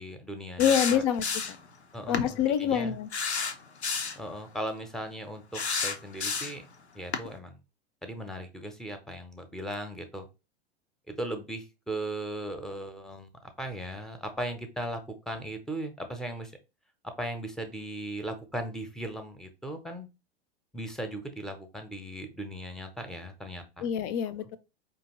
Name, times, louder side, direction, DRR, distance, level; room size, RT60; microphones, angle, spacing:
voice 1, 0.0-1.0 1.9-2.9 4.2-6.6 6.9-7.6 8.0-10.3 11.1-13.3 13.6-16.5 17.2-20.1 20.7-23.9, right 1 dB, ahead, 0.7 m, -37 dB
sound 1, 0.6-1.7 2.1-2.3 3.1-4.2 5.5-6.7 7.1-7.3, left 5 dB, 90° left, 0.6 m, -31 dB
voice 2, 0.6-1.6 2.1-3.1 23.8-24.6, left 8 dB, 40° left, 0.6 m, -26 dB
4.8 x 2.8 x 3.0 m
figure-of-eight pair, 95°, 32 cm